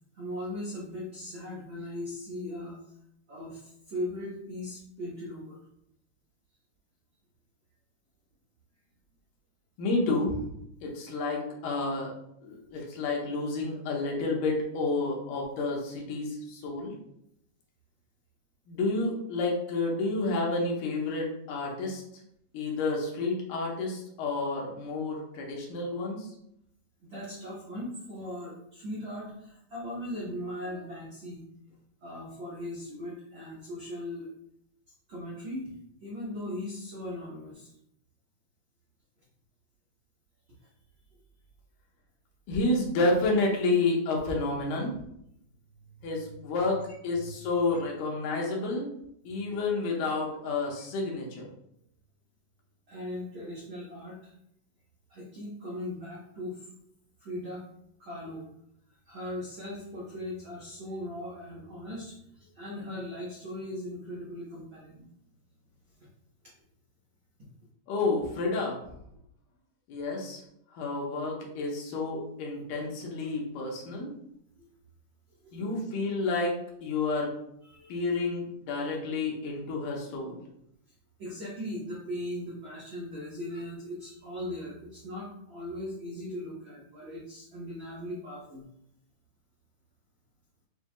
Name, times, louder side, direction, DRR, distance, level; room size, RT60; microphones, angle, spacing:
voice 1, 0.1-2.8 3.3-5.6 27.0-31.4 32.0-34.3 35.1-35.7 36.0-37.7 40.6-40.7 45.8-46.1 47.1-47.3 52.9-54.3 55.1-56.7 57.2-57.6 58.0-58.4 59.0-65.1 73.2-73.3 74.6-74.7 75.4-75.8 77.6-78.0 81.2-88.6, left 1 dB, 90° right, -7 dB, 1.0 m, -39 dB
voice 2, 9.8-10.5 10.8-12.1 12.4-16.9 18.7-22.0 22.5-26.3 42.5-44.9 46.0-48.9 49.3-51.5 67.9-68.8 69.9-70.4 70.7-74.1 75.5-77.3 77.9-80.4, left 3 dB, 85° left, -2 dB, 2.4 m, -30 dB
7.1 x 2.7 x 2.2 m, 0.76 s
omnidirectional pair, 3.7 m